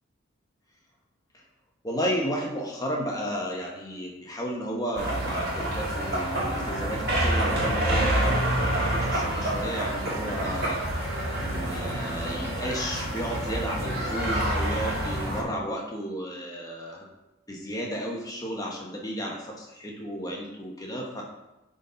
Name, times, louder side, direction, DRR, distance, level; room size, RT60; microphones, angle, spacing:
voice 1, 1.8-10.8 11.4-17.1 17.5-21.2, equal, 15° left, -1 dB, 1.1 m, -33 dB
sound 1, 5.0-15.4, right 1 dB, 45° right, 2.0 m, -27 dB
9.8 x 4.1 x 3.9 m, 0.98 s
head